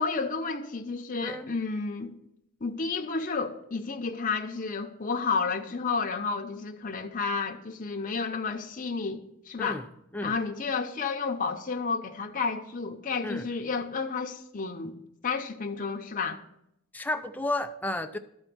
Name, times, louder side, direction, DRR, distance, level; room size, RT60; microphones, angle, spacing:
voice 1, 0.0-2.1 2.6-9.8 10.2-14.9 15.2-16.4, left 4 dB, 35° left, 0.7 m, -31 dB
voice 2, 16.9-18.2, left 2 dB, 5° left, 0.4 m, -32 dB
12.5 x 4.4 x 6.1 m
head